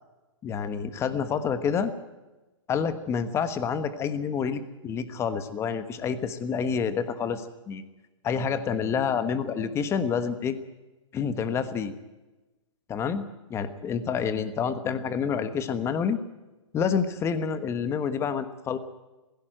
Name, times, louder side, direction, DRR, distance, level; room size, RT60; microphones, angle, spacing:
voice 1, 0.4-1.9 2.7-7.8 8.2-10.6 11.1-11.9 12.9-13.2 13.5-16.2 16.7-18.8, left 6 dB, 15° left, 12 dB, 1.3 m, -28 dB
18.0 x 16.0 x 9.1 m, 1.1 s
hypercardioid pair, 145°, 16 cm